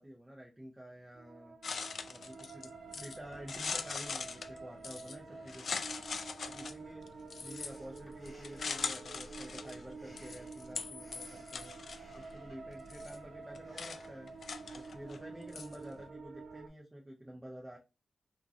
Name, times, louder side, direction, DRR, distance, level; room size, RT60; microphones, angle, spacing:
voice 1, 0.0-1.6 2.1-5.8 6.5-7.0 7.4-11.8 12.1-14.3 14.7-17.8, equal, 15° right, 0.7 m, -50 dB
sound 1, 1.1-16.7, right 4 dB, 70° right, 0.4 m, -49 dB
sound 2, 1.6-16.1, left 5 dB, 75° left, 0.3 m, -42 dB
Breathing, 7.5-15.1, equal, 45° left, 1.0 m, -60 dB
2.9 x 2.5 x 2.5 m
cardioid pair, 75°, 0 cm